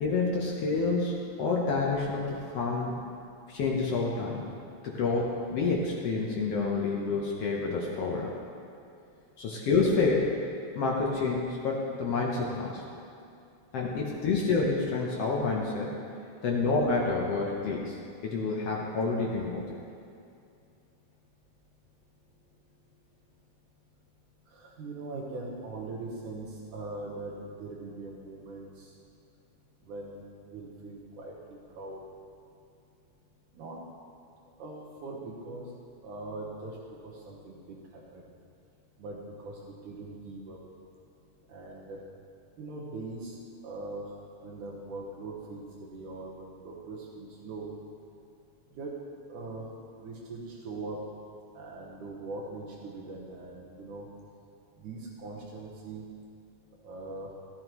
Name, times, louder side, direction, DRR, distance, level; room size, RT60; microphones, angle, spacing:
voice 1, 0.0-2.9 3.5-4.5 4.8-8.3 9.4-10.3 10.7-12.8 13.7-16.0 16.4-19.7, left 4 dB, 70° left, -2 dB, 1.5 m, -28 dB
voice 2, 24.5-27.3 27.6-28.9 29.9-30.2 30.5-32.0 33.5-33.8 34.6-35.7 36.0-36.8 37.0-38.2 39.0-39.6 39.8-40.6 41.5-42.0 42.6-43.4 43.6-44.0 44.4-47.7 48.7-48.9 49.3-49.6 50.0-51.0 51.6-54.1 54.8-56.0 56.8-57.3, right 3 dB, 70° right, -3 dB, 2.5 m, -41 dB
13.0 x 12.5 x 3.0 m, 2.5 s
omnidirectional pair, 3.9 m